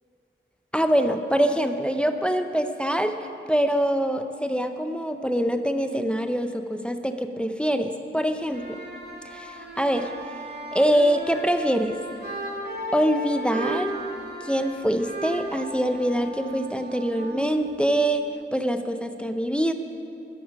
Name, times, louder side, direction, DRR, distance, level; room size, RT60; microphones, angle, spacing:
voice 1, 0.7-8.8 9.2-10.1 10.7-12.0 12.9-13.9 14.4-19.7, equal, 5° left, 7 dB, 0.6 m, -24 dB
sound 1, 8.4-18.2, right 1 dB, 55° right, 2.2 m, -36 dB
13.0 x 12.0 x 5.2 m, 2.6 s
wide cardioid pair, 75°, 21 cm